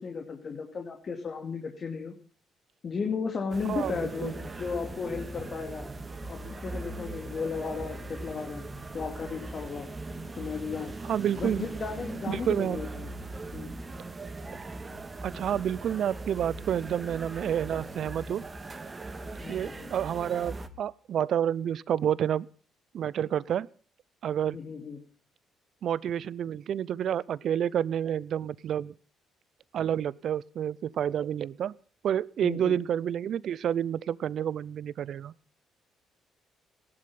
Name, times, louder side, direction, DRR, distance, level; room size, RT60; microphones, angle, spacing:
voice 1, 0.0-2.2 2.8-5.9 6.3-8.7 8.9-9.9 10.4-10.9 11.4-13.1 13.5-13.7 19.4-19.9 24.5-25.0 32.4-32.7, left 5 dB, 45° left, 4 dB, 2.6 m, -35 dB
sound 1, 3.5-20.7, right 2 dB, 30° right, 2.1 m, -40 dB
voice 2, 3.7-4.3 11.0-11.7 12.3-12.8 15.2-18.4 19.5-22.5 22.9-23.7 24.2-24.6 25.8-28.9 29.7-31.7 32.0-35.3, right 9 dB, 60° right, 22 dB, 0.6 m, -29 dB
17.0 x 12.0 x 5.7 m, 0.41 s
hypercardioid pair, 55°, 0 cm